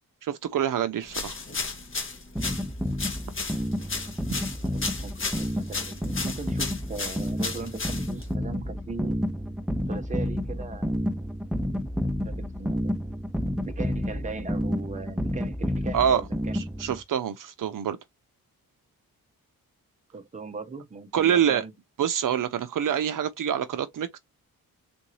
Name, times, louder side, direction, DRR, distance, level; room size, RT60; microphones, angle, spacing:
voice 1, 0.2-1.4 15.9-16.2 16.5-18.0 21.1-21.6 22.0-24.2, right 9 dB, 60° right, 0.6 m, -26 dB
sound 1, 1.1-8.3, left 4 dB, 35° left, 1.2 m, -34 dB
sound 2, 2.4-17.0, equal, ahead, 0.4 m, -30 dB
voice 2, 4.6-9.2 9.9-11.2 12.2-13.0 13.6-16.6 20.1-21.7, right 4 dB, 20° right, 0.7 m, -39 dB
3.8 x 2.6 x 3.0 m
wide cardioid pair, 110°, 36 cm